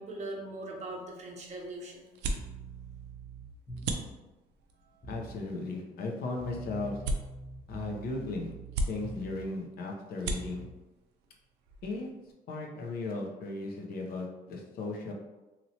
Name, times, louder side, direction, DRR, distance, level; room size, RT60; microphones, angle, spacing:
voice 1, 0.0-2.1, right 2 dB, 40° right, -1 dB, 0.8 m, -40 dB
sound 1, 0.8-12.3, right 2 dB, 80° right, 0.4 m, -40 dB
sound 2, 2.4-4.2 5.0-5.4 6.4-9.6 10.4-10.8, right 3 dB, 15° left, 0.8 m, -44 dB
voice 2, 5.1-7.0 7.7-8.5 8.9-10.6 11.8-12.1 12.5-15.1, left 2 dB, 65° left, 0 dB, 0.7 m, -36 dB
2.9 x 2.9 x 2.7 m, 1.1 s
cardioid pair, 110°, 17 cm